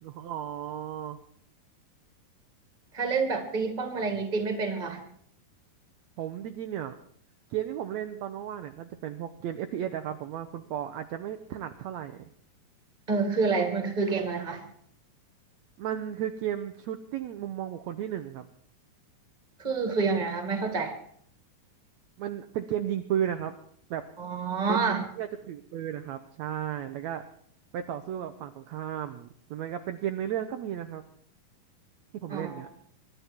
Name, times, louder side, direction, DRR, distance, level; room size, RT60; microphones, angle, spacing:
voice 1, 0.0-1.2 6.2-6.9 7.5-12.3 15.8-18.5 22.2-23.5 23.9-24.0 24.7-27.2 27.7-31.1 32.1-32.7, right 10 dB, 75° right, 7 dB, 1.7 m, -34 dB
voice 2, 2.9-5.0 13.1-14.6 19.6-20.9 24.2-25.0 32.3-32.7, right 4 dB, 15° right, 5 dB, 1.9 m, -28 dB
24.0 x 12.0 x 4.5 m, 0.64 s
omnidirectional pair, 3.9 m